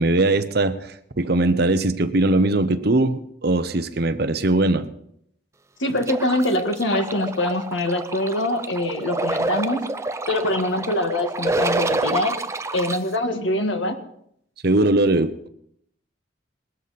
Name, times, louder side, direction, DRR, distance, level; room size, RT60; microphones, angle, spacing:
voice 1, 0.0-4.9 14.6-15.5, right 2 dB, 55° right, 10 dB, 0.9 m, -20 dB
voice 2, 5.8-9.8 10.3-12.3 12.7-14.0, left 1 dB, 80° left, 6 dB, 1.8 m, -23 dB
sound 1, 6.0-13.0, right 2 dB, 15° right, 0.5 m, -27 dB
20.0 x 13.0 x 4.2 m, 0.71 s
head